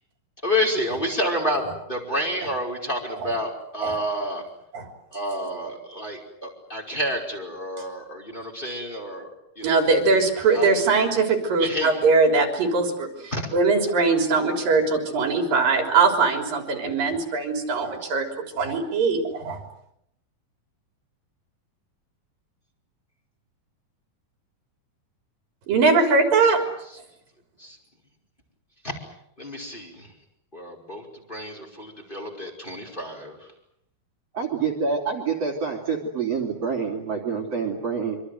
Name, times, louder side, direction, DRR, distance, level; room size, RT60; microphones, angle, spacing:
voice 1, 0.4-1.6 1.9-4.4 5.1-9.3 9.6-9.9 10.5-10.7 11.6-12.1 13.3-13.5 18.0-18.2 28.8-29.0 29.4-30.1 30.5-33.4, equal, 15° left, 1 dB, 5.2 m, -29 dB
voice 2, 9.6-18.3 18.6-19.6 25.7-26.6, right 4 dB, 70° right, 4 dB, 5.2 m, -21 dB
voice 3, 34.3-38.2, right 5 dB, 45° right, 1 dB, 4.1 m, -27 dB
26.0 x 25.0 x 8.0 m, 0.75 s
omnidirectional pair, 4.2 m